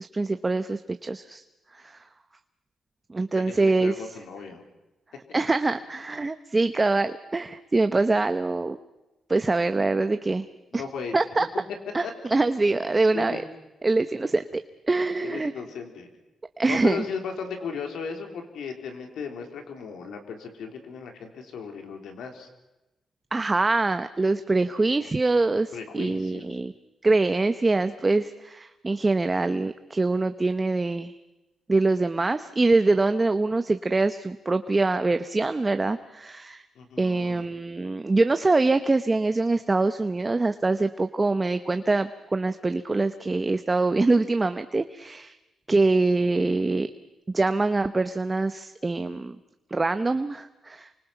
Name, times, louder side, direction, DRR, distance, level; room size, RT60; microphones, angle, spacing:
voice 1, 0.0-1.4 1.8-2.0 3.1-3.9 5.3-8.8 9.3-10.5 10.7-10.8 11.1-11.5 11.9-13.4 13.8-14.6 14.9-15.5 16.6-17.0 23.3-26.7 27.0-31.1 31.7-36.6 37.0-45.4 45.7-46.9 47.3-49.4 49.7-50.9, right 3 dB, 20° right, 10 dB, 0.8 m, -24 dB
voice 2, 3.3-4.6 10.7-11.2 12.0-12.1 13.1-13.4 15.2-16.1 16.6-22.5 25.7-26.6 36.8-37.5 46.1-46.2, left 6 dB, 85° left, 4 dB, 3.8 m, -36 dB
28.5 x 25.0 x 5.9 m, 1.0 s
cardioid pair, 115°, 0 cm